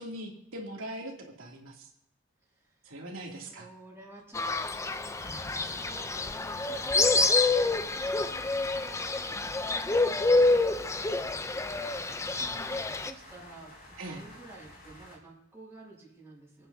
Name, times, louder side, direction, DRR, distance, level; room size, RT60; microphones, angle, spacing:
voice 1, 0.0-1.9 2.8-3.7 12.3-12.5 14.0-14.2, right 1 dB, 80° right, -1 dB, 2.7 m, -41 dB
voice 2, 2.4-2.8 3.4-4.4 4.8-7.3 7.6-16.7, right 2 dB, 10° right, -12 dB, 6.4 m, -52 dB
Fowl, 4.3-13.1, left 3 dB, 15° left, 0.5 m, -27 dB
sound 1, 5.2-15.2, left 1 dB, 50° left, 5.4 m, -50 dB
27.5 x 9.2 x 2.8 m, 0.80 s
head